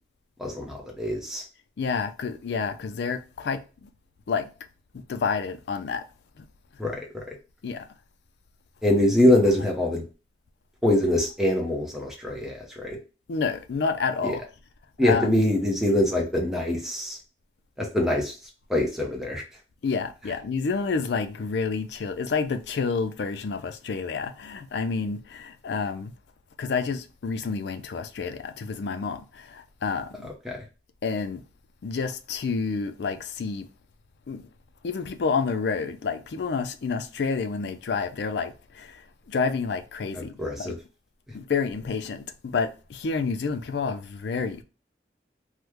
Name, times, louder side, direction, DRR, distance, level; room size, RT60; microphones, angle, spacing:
voice 1, 0.4-1.4 6.8-7.2 8.8-10.0 10.8-13.0 14.2-14.3 15.0-17.2 17.8-18.3 18.7-19.4 30.4-30.6 40.2-40.7, left 1 dB, ahead, 0.6 m, -24 dB
voice 2, 1.8-3.9 4.3-4.5 4.9-6.1 6.4-6.5 7.6-7.9 13.3-14.4 15.0-15.4 19.8-26.1 26.6-30.3 31.0-31.4 31.8-33.7 34.3-34.5 34.8-40.8 41.3-44.6, left 5 dB, 70° left, 0.4 m, -29 dB
3.0 x 2.1 x 3.4 m
head